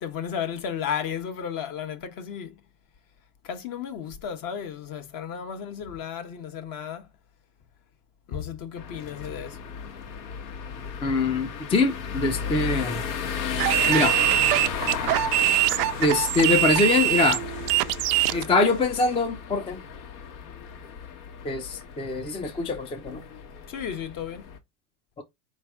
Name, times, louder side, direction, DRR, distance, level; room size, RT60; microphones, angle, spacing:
voice 1, 0.0-2.5 3.4-7.0 8.3-9.6 23.7-24.4, left 8 dB, 45° left, 1.2 m, -33 dB
sound 1, 8.8-24.6, left 6 dB, 70° left, 1.5 m, -34 dB
voice 2, 11.0-13.0 13.9-14.2 16.0-17.4 18.3-19.8 21.4-23.2 25.2-25.3, left 3 dB, 15° left, 0.5 m, -24 dB
sound 2, 13.6-18.4, right 16 dB, 80° right, 0.6 m, -23 dB
4.4 x 3.3 x 3.5 m
supercardioid pair, 120°, 47 cm